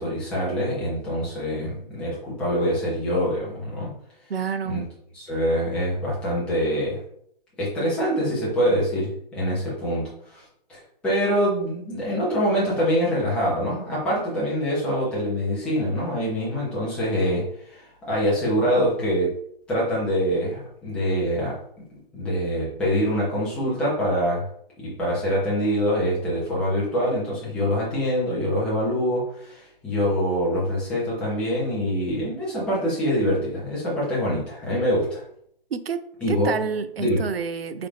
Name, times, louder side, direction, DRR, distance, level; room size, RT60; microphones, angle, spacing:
voice 1, 0.0-3.9 4.7-4.8 5.1-7.0 7.6-10.4 10.7-19.3 19.7-21.6 22.1-24.4 24.8-35.2 36.2-36.5 37.0-37.2, equal, 5° left, -8 dB, 1.0 m, -25 dB
voice 2, 4.3-4.8 35.7-37.9, right 6 dB, 85° right, 12 dB, 0.6 m, -29 dB
3.8 x 3.7 x 3.4 m, 0.68 s
hypercardioid pair, 155°, 29 cm